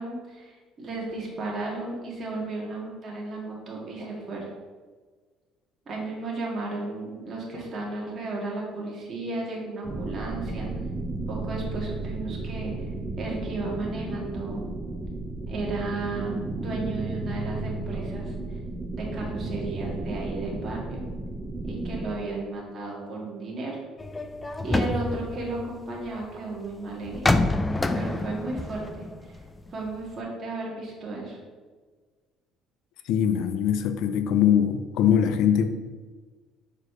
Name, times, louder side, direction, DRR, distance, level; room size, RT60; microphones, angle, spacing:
voice 1, 0.0-4.5 5.9-10.7 11.3-12.7 13.2-14.7 15.5-18.3 18.9-21.0 21.6-23.8 24.6-27.3 27.9-29.1 29.7-31.4, right 2 dB, 35° right, -3 dB, 1.9 m, -34 dB
sound 1, 9.8-22.1, right 2 dB, 15° right, 0.7 m, -33 dB
sound 2, 24.0-26.2 27.0-29.9 30.2-30.3, left 2 dB, 15° left, 0.4 m, -27 dB
voice 2, 33.1-35.7, left 9 dB, 70° left, 10 dB, 0.6 m, -22 dB
4.8 x 4.8 x 6.0 m, 1.4 s
cardioid pair, 140°, 0 cm